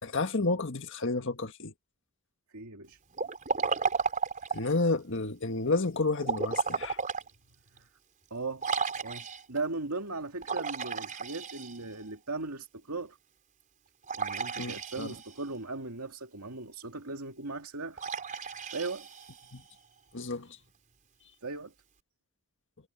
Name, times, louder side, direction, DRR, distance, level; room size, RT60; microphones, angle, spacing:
voice 1, 0.0-1.7 4.5-7.0 14.6-15.1 19.5-19.6 20.1-20.5, left 3 dB, 55° left, 1.7 m, -30 dB
voice 2, 2.5-3.0 7.8-7.9 8.3-8.7 9.0-13.2 14.2-18.0 18.7-19.1 21.4-21.7, right 3 dB, 80° right, 2.4 m, -38 dB
Liquid, 3.1-4.8 6.2-7.3 7.8-7.9 8.6-9.6 10.4-12.0 14.1-15.4 18.0-19.6, right 5 dB, 35° right, 4.6 m, -33 dB
head